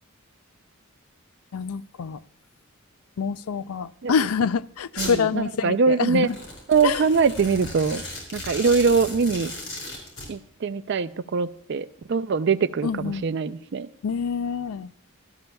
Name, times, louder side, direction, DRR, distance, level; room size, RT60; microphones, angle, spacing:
voice 1, 1.5-2.2 3.2-6.4 6.8-7.0 12.8-13.2 14.0-14.9, left 6 dB, 80° left, 0.4 m, -26 dB
Domestic sounds home sounds, 5.0-5.2 6.2-10.3, left 2 dB, 60° left, 5.0 m, -35 dB
voice 2, 5.0-6.3 6.7-8.0 8.3-9.5 10.3-13.9, right 5 dB, 55° right, 0.4 m, -23 dB
17.5 x 12.5 x 2.3 m
head